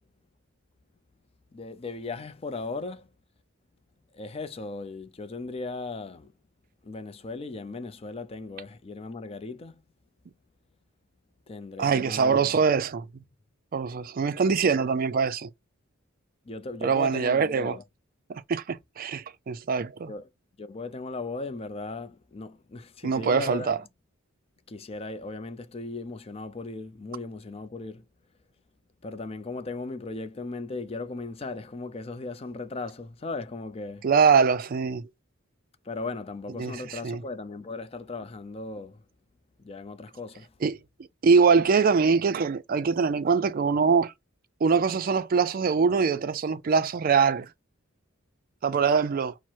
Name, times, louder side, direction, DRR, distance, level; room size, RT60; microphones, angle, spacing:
voice 1, 1.5-3.1 4.1-6.3 6.8-9.8 11.5-12.6 16.4-17.8 20.1-20.3 20.6-23.7 24.7-28.1 29.0-34.1 35.8-39.0 39.6-40.5, left 3 dB, 30° left, 0.4 m, -37 dB
voice 2, 11.8-13.0 13.7-15.5 16.8-17.8 18.3-20.1 23.0-23.8 34.0-35.1 36.6-37.2 40.6-40.8 41.2-44.1 44.6-47.5 48.6-49.3, right 5 dB, 45° right, 0.4 m, -23 dB
4.5 x 2.0 x 4.4 m
head